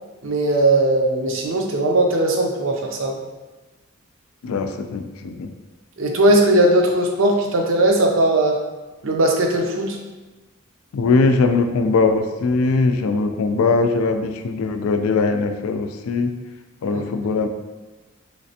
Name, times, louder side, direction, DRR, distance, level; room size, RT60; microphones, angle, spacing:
voice 1, 0.2-3.2 6.0-8.6 9.0-10.0 16.9-17.0, right 1 dB, 70° right, 1 dB, 0.6 m, -18 dB
voice 2, 4.4-5.5 10.9-16.3 16.8-17.5, left 3 dB, 85° left, 7 dB, 0.3 m, -20 dB
3.2 x 3.2 x 2.7 m, 1.2 s
head